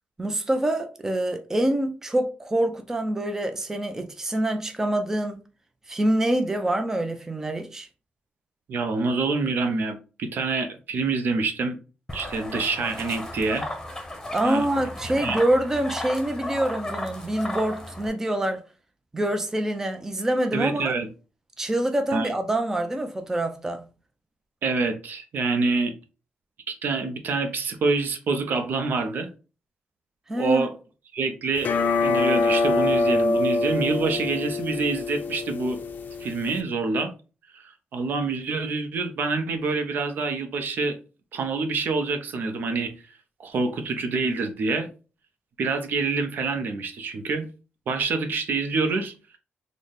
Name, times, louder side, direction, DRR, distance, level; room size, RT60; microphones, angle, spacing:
voice 1, 0.2-5.4 5.9-7.9 14.3-18.6 19.1-20.9 21.6-23.8 30.3-30.7, right 1 dB, 15° right, 0.4 m, -25 dB
voice 2, 8.7-11.8 12.1-13.7 14.4-14.6 15.2-15.4 20.5-21.1 22.1-22.3 24.6-25.9 26.7-29.3 30.3-30.7 31.1-31.7 32.0-35.8 36.2-37.1 37.5-41.0 41.3-42.9 43.4-44.9 45.6-47.5 47.9-49.1, right 4 dB, 60° right, 0.6 m, -26 dB
sound 1, 12.1-18.1, left 1 dB, 10° left, 0.8 m, -34 dB
sound 2, 31.6-36.6, left 3 dB, 55° left, 0.5 m, -25 dB
4.0 x 2.1 x 3.3 m
cardioid pair, 120°, 4 cm